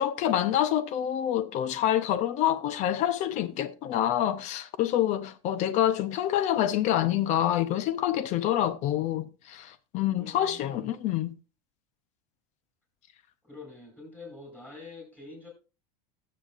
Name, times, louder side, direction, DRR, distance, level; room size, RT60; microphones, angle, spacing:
voice 1, 0.0-11.3, left 11 dB, 40° left, 0.6 m, -27 dB
voice 2, 10.2-10.9 13.4-15.5, left 3 dB, 10° left, 5.3 m, -46 dB
19.0 x 7.5 x 2.5 m
supercardioid pair, 150°, 18 cm